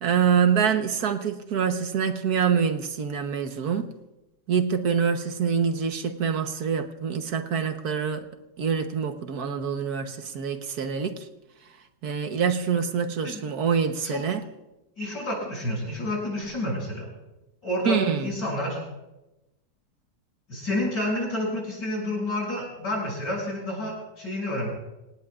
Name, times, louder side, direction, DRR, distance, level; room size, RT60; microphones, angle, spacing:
voice 1, 0.0-3.9 4.5-8.3 8.6-11.3 12.0-14.4 17.8-18.3, right 7 dB, 60° right, 7 dB, 1.6 m, -25 dB
voice 2, 14.0-14.4 15.0-17.1 17.6-18.8 20.5-24.7, left 1 dB, 80° left, -3 dB, 7.6 m, -29 dB
27.0 x 17.5 x 2.5 m, 0.98 s
omnidirectional pair, 1.9 m